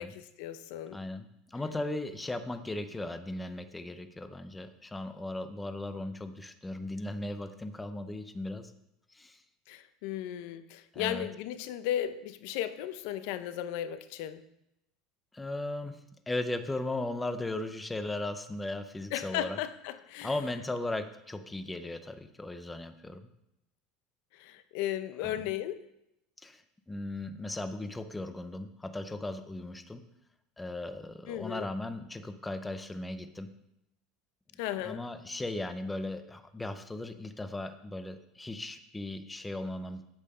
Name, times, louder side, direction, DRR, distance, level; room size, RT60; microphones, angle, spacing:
voice 1, 0.0-1.0 9.7-14.4 19.1-20.3 24.4-25.8 31.3-31.7 34.6-35.0, left 11 dB, 60° left, 0.7 m, -35 dB
voice 2, 0.9-8.7 9.1-9.4 10.9-11.3 15.3-16.0 16.3-19.6 20.2-23.2 25.2-25.4 26.4-26.6 26.9-30.0 30.6-33.5 34.8-40.1, left 2 dB, 5° left, 0.6 m, -37 dB
8.7 x 8.6 x 5.5 m
cardioid pair, 170°, 0 cm